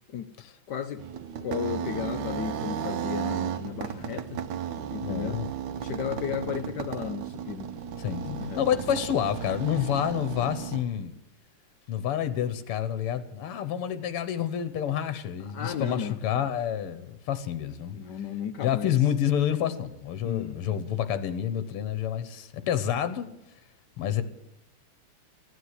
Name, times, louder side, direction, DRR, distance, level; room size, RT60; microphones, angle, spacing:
voice 1, 0.7-1.0 1.4-4.4 4.9-5.4 5.8-7.7 8.2-8.7 15.5-16.2 17.9-18.9 20.2-20.8, left 9 dB, 65° left, 1.1 m, -34 dB
sound 1, 1.0-10.8, right 8 dB, 65° right, 1.2 m, -34 dB
voice 2, 5.0-5.5 8.0-11.1 11.9-18.0 18.6-23.3 24.0-24.2, left 10 dB, 90° left, 1.8 m, -28 dB
15.5 x 9.6 x 9.6 m
omnidirectional pair, 2.4 m